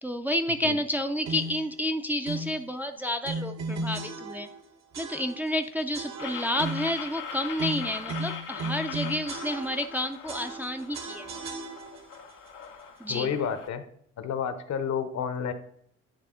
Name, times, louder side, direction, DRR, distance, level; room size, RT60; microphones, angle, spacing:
voice 1, 0.0-4.5 5.0-11.4 13.0-13.4, left 1 dB, 5° right, 6 dB, 0.4 m, -30 dB
sound 1, 1.2-1.7 2.2-2.6 3.2-4.6 4.9-5.6 5.9-7.0 7.6-10.0 10.3-12.2, right 2 dB, 65° right, 1.1 m, -36 dB
sound 2, 6.2-13.7, left 7 dB, 90° left, 0.9 m, -41 dB
voice 2, 13.1-13.8 14.2-15.5, left 7 dB, 65° left, 10 dB, 0.9 m, -30 dB
9.9 x 3.3 x 3.7 m, 0.66 s
cardioid pair, 90°, 30 cm